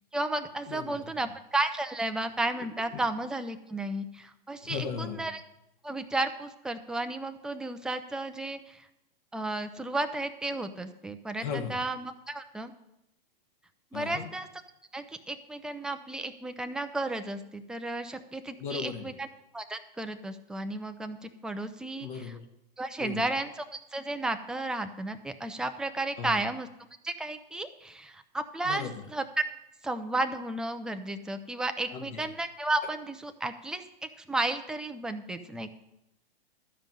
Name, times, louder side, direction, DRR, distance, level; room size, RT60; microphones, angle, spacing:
voice 1, 0.1-5.4 5.8-8.9 9.3-12.7 13.9-14.5 14.9-19.3 19.5-22.3 22.8-26.7 27.0-29.4 29.8-35.7, right 2 dB, 5° right, 8 dB, 0.4 m, -33 dB
voice 2, 0.7-1.1 2.9-3.0 4.6-5.2 11.4-11.8 13.9-14.3 18.6-19.2 22.0-22.4 23.0-23.2 26.2-26.4 28.6-29.0 31.9-32.3, left 6 dB, 55° left, 5 dB, 1.7 m, -36 dB
12.0 x 5.2 x 7.6 m, 0.87 s
hypercardioid pair, 130°, 29 cm